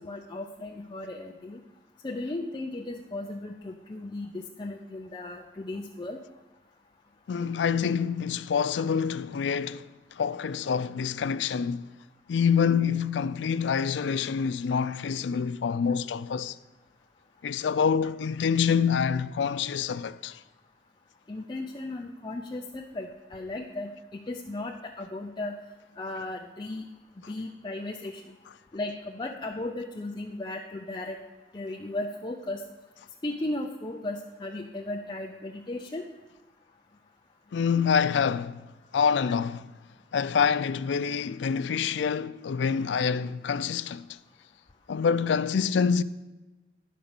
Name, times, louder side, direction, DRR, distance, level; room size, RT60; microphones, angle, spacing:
voice 1, 0.0-1.6 2.0-6.2 21.3-25.6 26.0-26.9 27.3-28.4 28.7-31.2 31.5-32.6 33.2-36.0, left 2 dB, 25° left, 0.5 m, -36 dB
voice 2, 7.3-9.9 10.2-11.9 12.3-16.6 17.4-20.4 37.5-39.7 40.1-44.1 44.9-46.0, left 6 dB, 90° left, 0.4 m, -26 dB
11.0 x 5.3 x 7.0 m
head